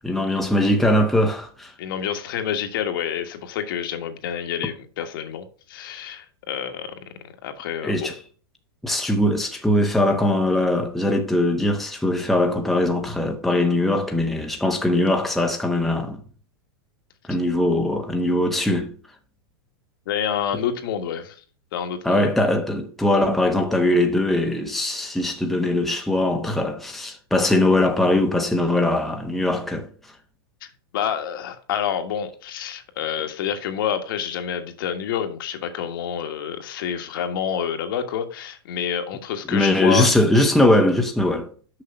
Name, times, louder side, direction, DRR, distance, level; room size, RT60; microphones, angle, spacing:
voice 1, 0.0-1.7 7.8-8.2 8.8-16.2 17.3-18.9 22.0-29.9 39.5-41.5, left 1 dB, ahead, 0.9 m, -21 dB
voice 2, 1.8-8.1 20.1-21.4 21.7-22.3 30.9-40.1, left 8 dB, 65° left, 1.5 m, -28 dB
6.6 x 5.6 x 6.5 m
supercardioid pair, 150°, 13 cm